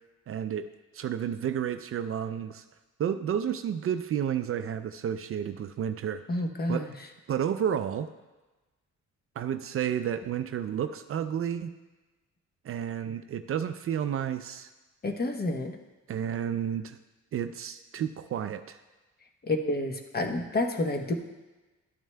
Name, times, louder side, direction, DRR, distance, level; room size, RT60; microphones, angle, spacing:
voice 1, 0.3-0.7 0.9-2.6 3.0-6.2 6.7-6.9 7.3-8.1 9.4-11.7 12.6-14.7 16.1-17.0 17.3-18.8, right 9 dB, 50° right, 10 dB, 0.4 m, -31 dB
voice 2, 6.3-6.9 15.0-15.8 19.4-21.1, left 2 dB, 30° left, 4 dB, 1.0 m, -29 dB
12.0 x 9.1 x 2.2 m, 1.2 s
cardioid pair, 90°, 30 cm